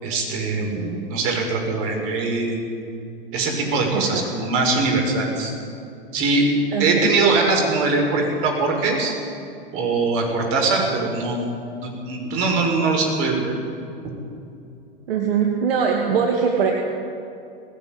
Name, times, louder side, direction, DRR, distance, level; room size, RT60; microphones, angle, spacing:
voice 1, 0.0-2.6 3.3-5.5 6.1-6.5 6.8-9.1 9.7-11.5 11.8-13.5, right 3 dB, 50° right, 2 dB, 6.9 m, -22 dB
voice 2, 0.6-1.1 3.9-4.3 6.7-7.1 10.4-10.5 15.1-16.7, right 6 dB, 75° right, 1 dB, 2.4 m, -22 dB
19.0 x 18.0 x 9.6 m, 2.6 s
hypercardioid pair, 100°, 29 cm